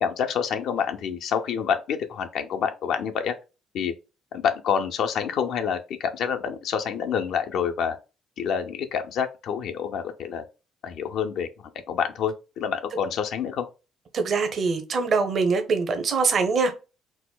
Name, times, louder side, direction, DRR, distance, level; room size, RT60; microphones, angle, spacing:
voice 1, 0.0-3.3 3.7-3.9 4.3-8.0 8.4-10.4 10.8-11.5 11.9-13.7, left 7 dB, 70° left, 0.4 m, -27 dB
voice 2, 14.1-16.7, right 4 dB, 50° right, 0.6 m, -23 dB
4.0 x 2.1 x 2.2 m
supercardioid pair, 65°, 0 cm